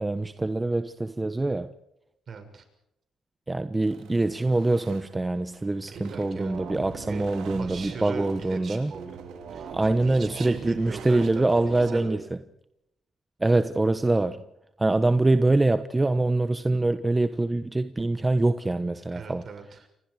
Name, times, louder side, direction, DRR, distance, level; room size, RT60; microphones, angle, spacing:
voice 1, 0.0-1.7 3.5-8.9 9.7-12.2 13.4-14.4 14.8-19.4, right 2 dB, 15° right, 1.2 m, -24 dB
voice 2, 2.3-2.6 5.9-6.6 7.0-7.3 7.6-9.1 9.5-12.3 19.1-19.9, right 5 dB, 50° right, 6.7 m, -40 dB
sound 1, 3.8-12.0, right 8 dB, 85° right, 4.0 m, -50 dB
sound 2, 5.9-8.3 8.9-11.9, right 6 dB, 65° right, 5.3 m, -41 dB
29.5 x 26.0 x 4.9 m
cardioid pair, 90°, 0 cm